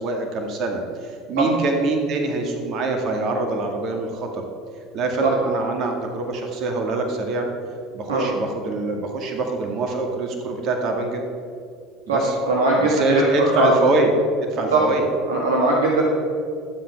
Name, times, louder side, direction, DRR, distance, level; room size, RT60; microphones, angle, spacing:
voice 1, 0.0-4.4 4.9-7.5 7.9-11.2 12.1-12.3 12.7-14.1 14.5-15.0, right 3 dB, 50° right, 3 dB, 2.0 m, -24 dB
voice 2, 12.1-13.8 14.7-14.9 15.3-16.0, right 2 dB, 90° right, -3 dB, 1.6 m, -19 dB
12.0 x 7.9 x 5.9 m, 2.3 s
hypercardioid pair, 80°, 0 cm